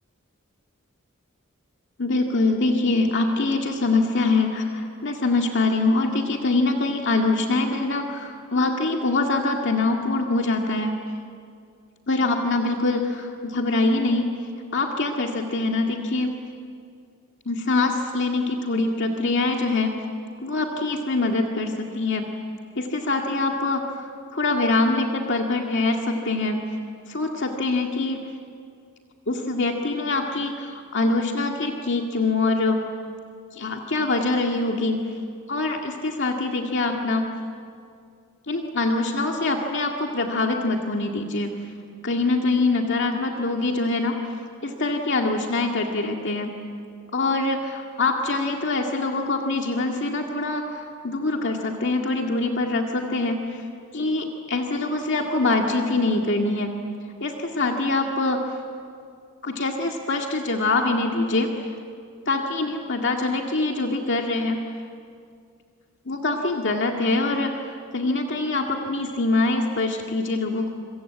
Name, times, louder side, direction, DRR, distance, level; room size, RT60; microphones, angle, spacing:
voice 1, 2.0-10.9 12.1-14.3 14.7-16.3 17.5-20.0 20.4-22.3 22.8-26.7 27.1-28.2 29.3-32.8 33.5-35.0 35.5-37.3 38.5-41.5 42.0-44.2 44.6-46.5 47.1-53.6 53.9-56.7 57.2-58.5 59.4-61.5 62.3-64.6 66.1-70.7, left 2 dB, 55° left, 2 dB, 2.0 m, -24 dB
27.0 x 24.5 x 8.6 m, 2.2 s
head